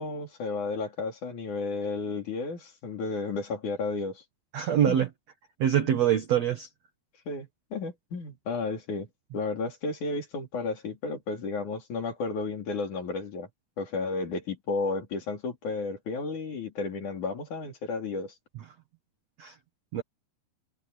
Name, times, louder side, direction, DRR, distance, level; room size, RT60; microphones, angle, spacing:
voice 1, 0.0-4.2 4.9-5.0 5.8-6.0 7.3-9.1 9.3-13.5 13.8-18.3, left 3 dB, 50° left, 4.3 m, -33 dB
voice 2, 4.5-5.1 5.6-6.7 19.4-19.5 19.9-20.0, right 10 dB, 65° right, 1.7 m, -24 dB
omnidirectional pair, 4.9 m